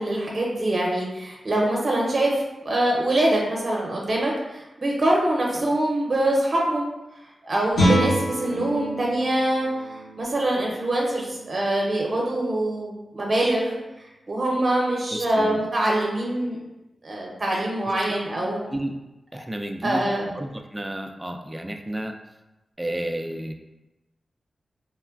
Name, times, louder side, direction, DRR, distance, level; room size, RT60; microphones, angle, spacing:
voice 1, 0.0-6.9 7.5-9.7 10.2-13.8 14.3-16.6 17.0-18.6 19.8-20.3, right 1 dB, 45° right, -2 dB, 0.6 m, -24 dB
Guitar, 7.7-13.3, equal, 80° left, 1.2 m, -28 dB
voice 2, 15.1-15.6 17.8-17.9 18.7-18.9 19.3-22.1 22.8-23.5, right 1 dB, 15° right, 5 dB, 0.3 m, -32 dB
3.1 x 2.1 x 2.3 m, 1.0 s
cardioid pair, 50°, 0 cm